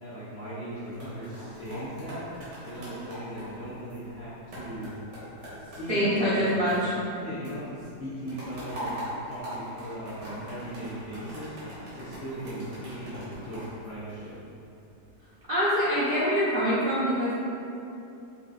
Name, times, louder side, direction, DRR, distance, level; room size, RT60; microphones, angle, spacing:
voice 1, 0.0-2.3 2.6-5.0 5.6-6.6 7.2-9.0 9.2-11.5 11.9-14.4, equal, 65° left, -11 dB, 0.6 m, -38 dB
sound 1, 0.9-7.2 7.4-14.6 15.1-15.4, equal, 85° right, 1.7 m, -42 dB
voice 2, 5.9-6.9 15.5-17.3, equal, 65° right, -11 dB, 0.5 m, -25 dB
5.5 x 2.3 x 2.4 m, 2.8 s
omnidirectional pair, 1.8 m